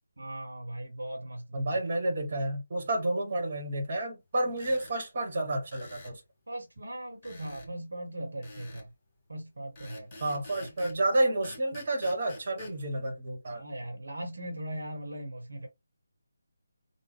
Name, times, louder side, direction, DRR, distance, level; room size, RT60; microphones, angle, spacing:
voice 1, 0.2-1.7 4.7-4.8 6.5-8.9 9.3-10.1 10.6-10.7 13.5-15.7, right 1 dB, 70° right, 1.2 m, -39 dB
voice 2, 1.5-6.2 10.2-13.6, right 1 dB, 40° right, 1.4 m, -30 dB
sound 1, 4.5-5.0 5.7-6.2 7.2-7.7 8.4-8.9 9.7-11.0 11.4-12.7, left 2 dB, 25° left, 2.1 m, -48 dB
3.6 x 2.3 x 3.4 m
figure-of-eight pair, 155°, 0 cm